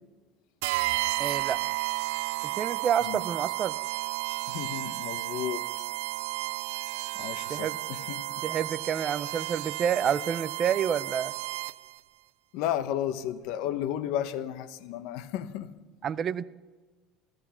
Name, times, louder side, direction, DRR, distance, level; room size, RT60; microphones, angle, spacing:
sound 1, 0.6-12.0, right 20 dB, 90° right, 0.5 m, -32 dB
voice 1, 1.2-1.6 2.6-3.7 7.5-7.8 8.4-11.3 16.0-16.4, right 8 dB, 25° right, 0.4 m, -28 dB
voice 2, 4.5-5.6 7.1-8.2 12.5-15.7, left 11 dB, 55° left, 1.0 m, -33 dB
16.0 x 15.0 x 5.8 m
cardioid pair, 180°, 0 cm